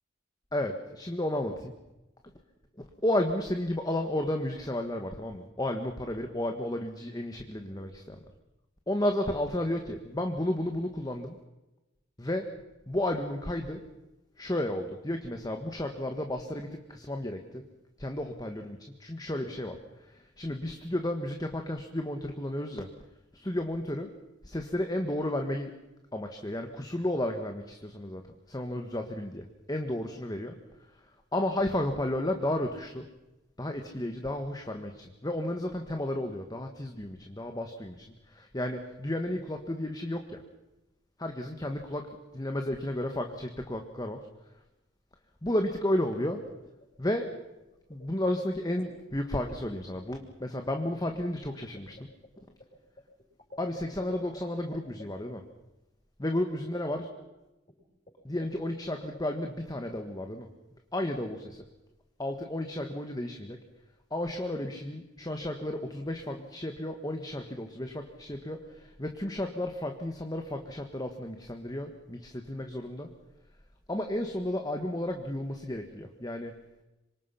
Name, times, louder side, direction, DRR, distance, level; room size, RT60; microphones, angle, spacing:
voice 1, 0.5-1.7 3.0-8.2 8.9-11.4 12.2-12.5 12.9-13.8 14.4-17.6 18.0-19.8 20.0-22.9 23.3-24.1 24.4-25.7 26.1-28.2 28.5-30.6 31.3-33.1 33.6-40.4 41.2-42.0 42.3-44.2 45.4-46.4 47.0-47.3 47.9-52.1 53.6-55.4 56.2-57.0 58.2-60.5 60.9-61.6 62.2-63.6 64.1-73.1 73.9-76.5, left 1 dB, 20° left, 5 dB, 1.5 m, -32 dB
sound 1, 46.1-46.5 46.8-47.3 47.6-48.1 48.4-49.0 49.4-49.6 51.1-54.4 54.7-55.1 56.6-56.7 57.0-57.2 57.7-57.8 58.1-58.2 58.4-58.7 59.1-59.6, left 1 dB, 35° left, 6.9 m, -49 dB
27.0 x 24.5 x 5.8 m, 0.99 s
head